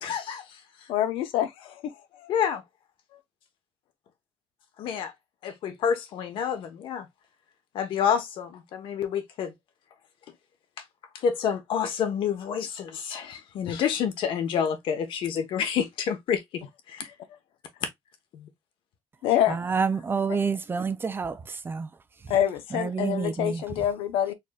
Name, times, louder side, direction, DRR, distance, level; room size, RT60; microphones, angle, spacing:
voice 1, 0.0-0.9 2.3-2.6 4.8-5.1 5.4-7.1 7.7-9.5 10.8-10.9 11.1-17.1 18.3-18.5, left 7 dB, 70° left, 1.2 m, -29 dB
voice 2, 0.9-2.3 19.2-19.6 22.3-24.3, left 11 dB, 90° left, 0.8 m, -26 dB
voice 3, 19.5-21.4 21.7-21.9 22.7-23.6, right 5 dB, 25° right, 0.4 m, -28 dB
4.2 x 3.3 x 2.4 m
cardioid pair, 115°, 9 cm